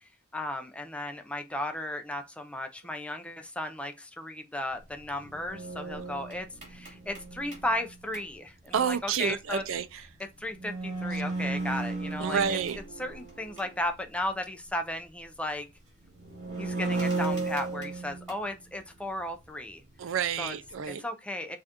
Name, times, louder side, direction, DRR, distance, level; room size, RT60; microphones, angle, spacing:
voice 1, 0.0-9.6 10.4-12.6 13.0-15.7 16.6-19.8 20.4-20.5 20.9-21.6, left 1 dB, 5° left, 0.4 m, -35 dB
sound 1, 4.9-8.2 10.1-10.2 10.5-13.8 14.2-14.3 16.0-18.5, right 3 dB, 35° right, 2.9 m, -35 dB
voice 2, 8.7-10.0 12.2-12.8 20.0-21.0, right 7 dB, 80° right, 0.4 m, -29 dB
6.4 x 2.5 x 2.8 m
head